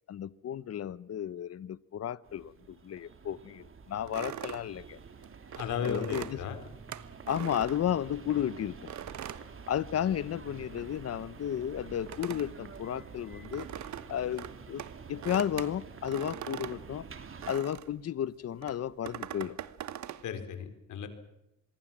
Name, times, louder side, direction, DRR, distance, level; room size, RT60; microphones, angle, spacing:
voice 1, 0.1-5.0 5.8-6.4 7.3-8.9 9.7-13.7 14.1-14.8 15.1-17.1 17.5-19.6, left 10 dB, 55° left, 18 dB, 1.0 m, -33 dB
sound 1, 2.2-17.5, right 5 dB, 45° right, 3.2 m, -48 dB
sound 2, 4.1-8.4 8.9-10.4 10.6-18.0 18.6-20.3, right 11 dB, 70° right, 1.4 m, -42 dB
voice 2, 5.6-6.6 20.2-21.1, left 7 dB, 80° left, 8 dB, 4.3 m, -35 dB
25.5 x 22.5 x 7.5 m, 0.86 s
cardioid pair, 90°, 30 cm